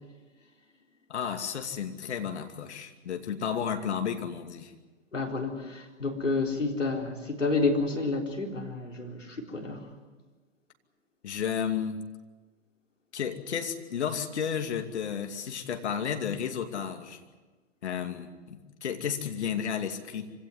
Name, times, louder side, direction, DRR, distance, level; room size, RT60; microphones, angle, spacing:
voice 1, 1.1-4.7 11.2-12.0 13.1-17.2 17.8-20.3, left 7 dB, 65° left, 6 dB, 2.6 m, -32 dB
voice 2, 5.1-9.8, left 3 dB, 85° left, 2 dB, 4.1 m, -30 dB
25.5 x 17.5 x 9.6 m, 1.3 s
figure-of-eight pair, 110°, 36 cm